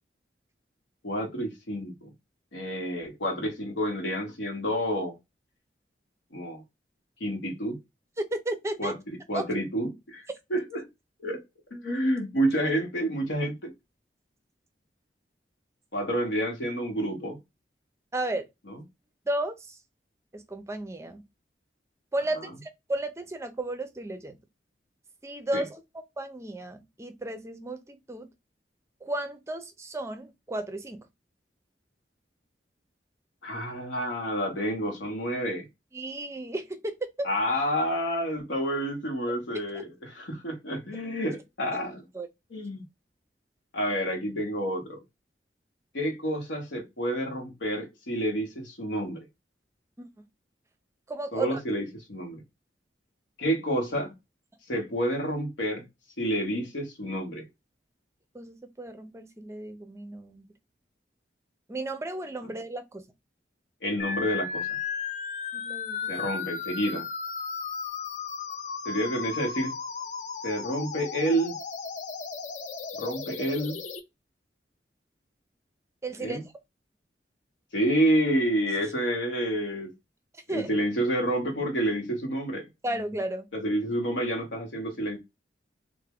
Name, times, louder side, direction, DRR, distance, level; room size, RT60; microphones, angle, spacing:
voice 1, 1.0-2.1 2.5-5.2 6.3-6.6 7.2-7.8 8.8-10.9 11.2-11.4 11.7-13.7 15.9-17.4 18.7-18.8 25.5-25.6 33.4-35.7 37.2-42.0 42.5-42.8 43.7-45.0 45.9-49.3 51.3-52.4 53.4-54.1 54.7-55.8 56.2-57.4 63.8-64.8 66.1-67.1 68.8-69.7 70.4-71.6 73.0-73.8 76.2-76.4 77.7-79.9 80.5-82.7 83.5-85.2, equal, 85° left, 0.9 m, -29 dB
voice 2, 8.4-8.9 9.3-9.4 18.1-18.4 19.3-19.8 20.3-21.2 22.1-24.3 25.2-25.8 26.2-28.3 29.0-31.0 35.9-37.3 42.1-42.3 50.0-50.1 51.1-51.6 58.3-60.4 61.7-63.0 65.5-66.1 76.0-76.4 80.5-80.7 82.8-83.5, right 1 dB, 15° right, 0.4 m, -34 dB
sound 1, 64.0-74.0, left 5 dB, 40° left, 0.4 m, -35 dB
3.4 x 2.0 x 3.4 m
head